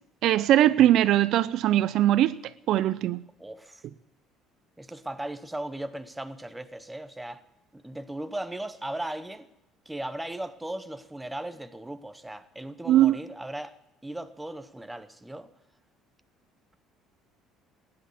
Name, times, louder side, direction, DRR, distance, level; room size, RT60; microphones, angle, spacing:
voice 1, 0.2-2.4 2.7-3.2 12.9-13.2, right 13 dB, 55° right, 0.5 m, -21 dB
voice 2, 3.4-3.8 4.8-7.4 7.7-9.5 9.9-13.8 14.0-15.5, right 1 dB, 5° right, 0.8 m, -37 dB
15.5 x 10.5 x 8.4 m
cardioid pair, 160°, 0 cm